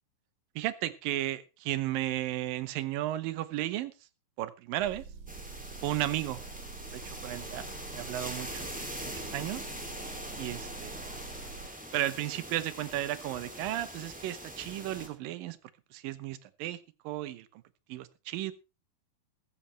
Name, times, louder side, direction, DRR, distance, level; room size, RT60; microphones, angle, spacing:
voice 1, 0.6-3.9 4.4-5.1 5.8-6.4 6.9-7.7 7.9-8.8 9.0-9.7 10.4-11.0 11.9-15.6 15.9-16.8 17.0-17.5 17.9-18.5, right 14 dB, 75° right, 15 dB, 2.5 m, -34 dB
Motor vehicle (road) / Engine, 4.8-11.7, right 5 dB, 60° right, 3.0 m, -46 dB
sound 1, 5.3-15.1, equal, 5° right, 1.9 m, -42 dB
15.0 x 14.5 x 3.3 m, 0.29 s
omnidirectional pair, 4.2 m